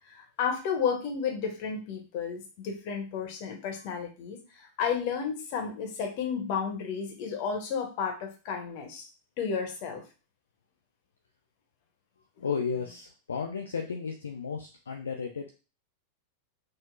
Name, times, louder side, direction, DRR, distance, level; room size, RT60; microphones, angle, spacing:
voice 1, 0.1-9.1 9.4-10.0 12.4-12.5, left 6 dB, 45° left, 3 dB, 0.9 m, -32 dB
voice 2, 12.4-15.5, left 6 dB, 70° left, 2 dB, 0.4 m, -33 dB
3.7 x 2.0 x 2.5 m, 0.33 s
figure-of-eight pair, 90°, 0 cm